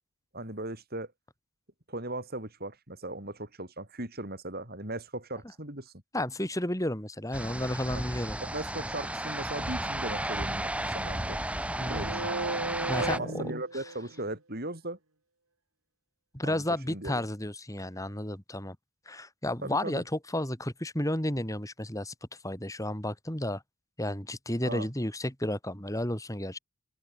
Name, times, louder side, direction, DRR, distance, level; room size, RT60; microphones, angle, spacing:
voice 1, 0.3-1.1 1.9-5.9 7.9-8.0 8.4-11.4 11.9-12.3 12.9-15.0 16.4-17.2 19.6-20.0 24.6-24.9, right 2 dB, 45° right, 5.7 m, -38 dB
voice 2, 6.1-8.4 11.8-12.2 12.9-13.4 16.3-18.8 19.1-22.1 22.4-23.6 24.0-26.6, left 1 dB, 15° left, 3.4 m, -32 dB
sound 1, 7.3-13.2, right 1 dB, 5° right, 5.5 m, -34 dB
sound 2, 11.8-14.3, right 2 dB, 65° right, 3.4 m, -35 dB
open air
head